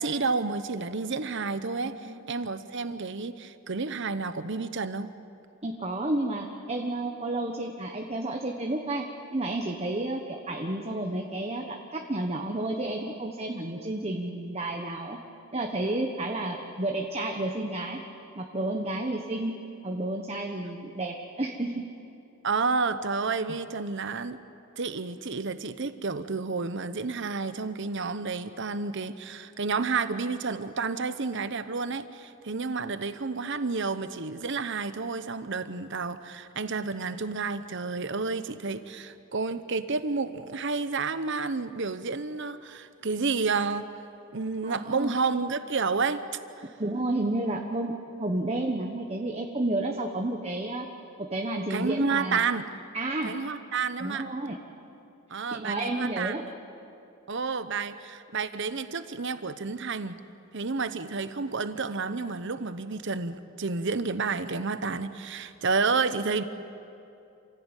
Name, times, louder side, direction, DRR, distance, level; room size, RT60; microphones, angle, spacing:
voice 1, 0.0-5.1 22.4-24.4 24.8-43.9 44.3-46.2 46.6-46.7 51.7-52.7 53.2-54.3 55.3-56.3 57.3-60.2 60.5-66.4, right 4 dB, 60° right, 12 dB, 0.9 m, -30 dB
voice 2, 1.8-2.2 5.6-9.1 9.3-15.2 15.5-18.0 18.3-19.5 19.8-21.8 44.6-45.1 46.8-50.9 51.2-52.4 52.9-53.3 54.0-54.6 55.5-56.4, right 2 dB, 30° right, 2 dB, 1.3 m, -31 dB
28.0 x 16.5 x 9.1 m, 2.7 s
head